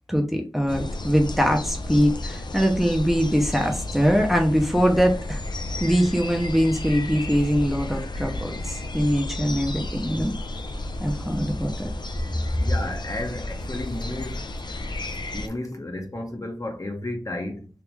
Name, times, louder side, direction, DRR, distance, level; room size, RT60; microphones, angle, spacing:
voice 1, 0.1-5.4 5.8-10.3 11.0-11.9, equal, 5° right, 0.6 m, -22 dB
sound 1, 0.7-15.5, left 1 dB, 55° left, 0.5 m, -32 dB
voice 2, 12.6-14.4 15.3-17.7, left 1 dB, 40° left, 0.8 m, -32 dB
3.4 x 2.5 x 3.1 m
wide cardioid pair, 65°, 9 cm